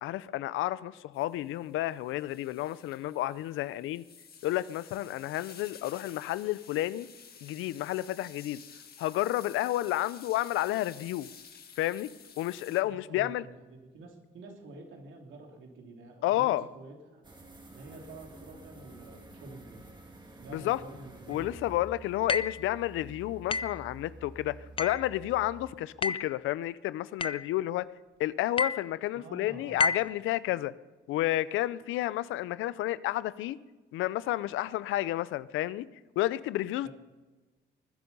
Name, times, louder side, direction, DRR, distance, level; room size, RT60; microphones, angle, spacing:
voice 1, 0.0-4.0 4.4-7.1 7.4-8.6 9.0-11.3 11.8-12.1 12.4-13.4 16.2-16.7 20.5-20.8 21.3-27.9 28.2-30.7 31.1-33.6 33.9-35.9 36.2-36.9, left 15 dB, 90° left, 18 dB, 0.5 m, -31 dB
sound 1, 1.1-12.8, left 7 dB, 50° left, 1.6 m, -52 dB
voice 2, 12.8-17.2 17.7-19.9 20.4-21.6 29.1-29.9 36.8-36.9, right 2 dB, 75° right, 2 dB, 3.1 m, -48 dB
sound 2, 17.2-25.7, right 2 dB, 20° right, 2.5 m, -50 dB
sound 3, 22.3-22.7 23.5-23.8 24.8-25.1 26.0-26.4 27.2-27.5 28.6-28.9 29.8-30.2, left 4 dB, 25° left, 0.5 m, -30 dB
20.5 x 10.5 x 5.4 m, 1.2 s
cardioid pair, 90°, 20 cm